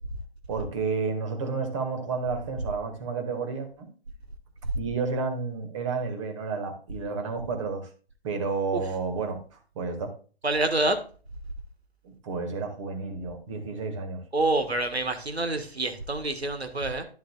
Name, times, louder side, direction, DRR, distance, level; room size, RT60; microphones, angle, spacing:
voice 1, 0.5-3.9 4.7-7.9 8.2-9.4 9.7-10.1 12.0-14.2, right 4 dB, 30° right, 6 dB, 1.7 m, -31 dB
voice 2, 10.4-11.0 14.3-17.0, right 2 dB, 90° right, 7 dB, 1.5 m, -27 dB
11.5 x 6.6 x 2.3 m, 0.38 s
figure-of-eight pair, 140°, 31 cm